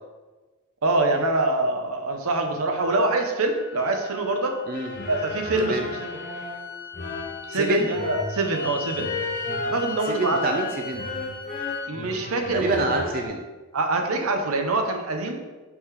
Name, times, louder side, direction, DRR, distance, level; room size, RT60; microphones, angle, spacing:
voice 1, 0.8-4.6 5.1-6.1 7.5-9.1 9.7-10.4 11.9-12.9 13.7-15.4, right 2 dB, 80° right, 4 dB, 0.8 m, -25 dB
sound 1, 2.7-11.9, left 7 dB, 55° left, 1.1 m, -38 dB
sound 2, 4.7-13.3, left 2 dB, 40° left, 0.8 m, -34 dB
voice 2, 7.5-7.9 10.1-11.1 12.5-13.4, right 2 dB, 40° right, 3 dB, 0.4 m, -26 dB
6.1 x 3.8 x 4.8 m, 1.2 s
head